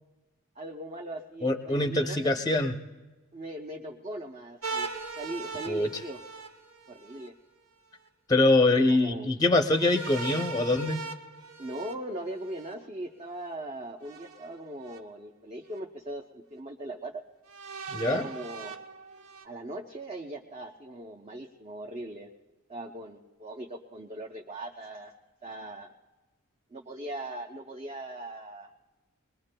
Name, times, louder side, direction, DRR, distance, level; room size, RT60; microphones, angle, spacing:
voice 1, 0.6-2.3 3.3-4.9 5.2-6.2 6.9-7.3 8.7-9.3 11.6-17.2 18.0-18.7 19.4-22.3 22.7-25.1 25.4-25.9 26.7-28.7, right 1 dB, 30° right, 0 dB, 0.6 m, -39 dB
voice 2, 1.4-2.7 5.7-5.9 8.3-11.0 17.9-18.3, left 2 dB, 20° left, 6 dB, 0.6 m, -24 dB
sound 1, 4.6-7.3 9.7-12.7 14.0-15.0 15.7-15.8 17.5-19.5, right 4 dB, 90° right, 0.9 m, -40 dB
22.5 x 20.5 x 2.2 m, 1.2 s
head